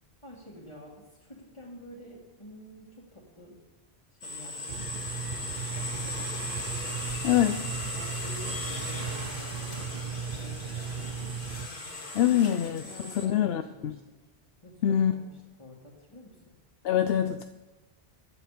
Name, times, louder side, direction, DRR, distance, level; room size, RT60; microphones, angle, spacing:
voice 1, 0.2-3.6 4.1-6.5 7.7-11.4 12.1-14.0 14.6-16.4, left 1 dB, 30° left, -6 dB, 2.4 m, -49 dB
sound 1, 4.2-13.3, left 1 dB, 55° left, 2.2 m, -38 dB
sound 2, 4.7-11.7, right 6 dB, 55° right, 0.6 m, -37 dB
voice 2, 7.2-7.7 12.1-13.9 14.8-15.1 16.8-17.4, left 10 dB, 70° left, 9 dB, 0.8 m, -25 dB
15.0 x 10.5 x 5.1 m, 1.1 s
omnidirectional pair, 1.1 m